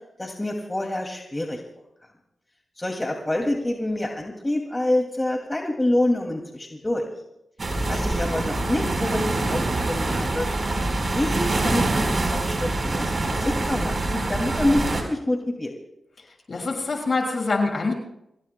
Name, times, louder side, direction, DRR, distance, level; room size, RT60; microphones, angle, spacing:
voice 1, 0.2-1.6 2.8-7.1 7.9-10.5 11.1-15.7, left 1 dB, 25° left, 1 dB, 2.4 m, -27 dB
sound 1, 7.6-15.0, right 2 dB, 45° right, 4.3 m, -25 dB
voice 2, 16.5-17.9, left 3 dB, 55° left, 1 dB, 5.9 m, -25 dB
27.5 x 16.5 x 2.2 m, 0.82 s
cardioid pair, 45°, 0 cm